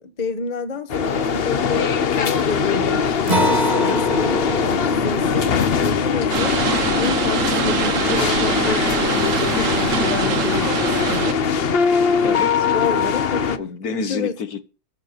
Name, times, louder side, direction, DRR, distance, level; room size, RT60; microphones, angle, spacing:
voice 1, 0.2-6.6 6.9-11.4 12.7-14.3, left 3 dB, 30° left, 1.2 m, -29 dB
sound 1, 0.9-13.6, left 6 dB, 45° left, 0.8 m, -21 dB
Acoustic guitar, 3.3-8.2, equal, 25° right, 1.8 m, -27 dB
sound 2, 6.3-11.3, right 8 dB, 55° right, 1.2 m, -24 dB
voice 2, 12.2-12.7 13.6-14.6, left 6 dB, 65° left, 1.6 m, -29 dB
14.5 x 6.6 x 6.8 m
omnidirectional pair, 1.8 m